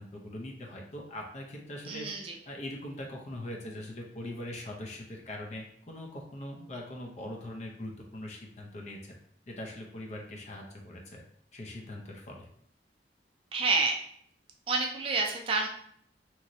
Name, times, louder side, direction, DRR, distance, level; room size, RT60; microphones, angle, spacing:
voice 1, 0.0-2.1 2.5-9.2 9.5-11.2 11.5-12.5, left 1 dB, 40° left, 1 dB, 0.5 m, -41 dB
voice 2, 1.9-2.3 13.5-13.9 14.7-15.7, right 3 dB, 30° right, 2 dB, 0.4 m, -28 dB
3.0 x 2.7 x 2.5 m, 0.66 s
head